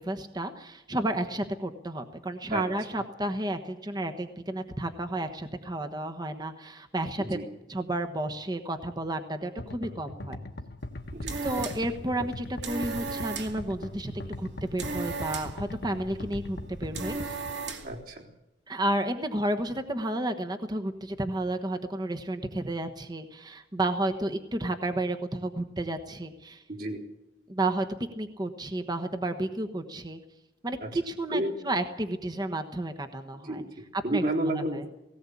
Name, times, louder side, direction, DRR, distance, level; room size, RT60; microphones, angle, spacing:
voice 1, 0.0-7.4 7.7-10.4 11.4-14.1 14.4-17.3 18.7-26.6 27.5-27.9 28.2-30.2 30.6-33.6 33.9-34.9, right 1 dB, 25° right, 6 dB, 1.2 m, -32 dB
sound 1, 9.6-17.5, left 1 dB, 60° left, 1.4 m, -40 dB
sound 2, 10.9-18.0, right 4 dB, 75° right, 2.4 m, -38 dB
voice 2, 17.8-18.3 26.7-27.0 30.8-30.9 31.3-31.5 33.4-34.9, right 1 dB, 55° right, -2 dB, 3.9 m, -31 dB
18.0 x 17.5 x 8.5 m, 0.89 s
head